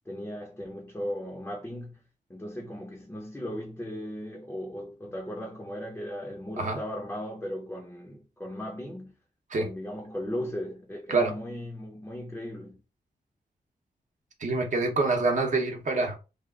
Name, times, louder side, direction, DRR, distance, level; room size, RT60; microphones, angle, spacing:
voice 1, 0.1-2.0 2.3-9.2 9.6-12.8, equal, 10° left, 0.5 m, -37 dB
voice 2, 14.4-16.2, right 3 dB, 50° right, 0.8 m, -26 dB
3.3 x 2.4 x 3.5 m
wide cardioid pair, 165°, 16 cm